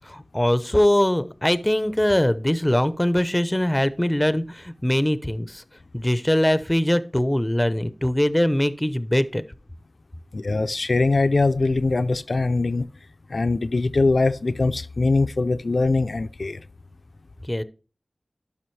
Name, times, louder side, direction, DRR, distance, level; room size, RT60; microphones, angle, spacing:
voice 1, 0.0-5.6 5.9-9.5 17.5-17.6, left 1 dB, 15° left, 0.6 m, -22 dB
voice 2, 10.3-12.9 13.3-16.6, left 3 dB, 70° left, 0.4 m, -22 dB
11.5 x 5.6 x 3.2 m
wide cardioid pair, 60°, 0 cm